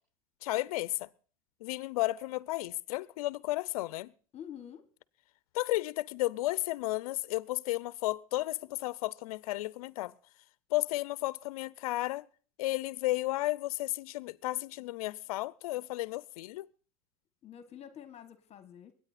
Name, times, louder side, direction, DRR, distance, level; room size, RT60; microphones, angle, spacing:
voice 1, 0.4-1.1 1.6-4.1 5.5-10.1 10.7-12.2 12.6-16.7, left 18 dB, 75° left, 0.6 m, -33 dB
voice 2, 4.3-4.9 17.4-18.9, left 9 dB, 35° left, 1.3 m, -47 dB
22.5 x 9.2 x 4.3 m
supercardioid pair, 105°, 18 cm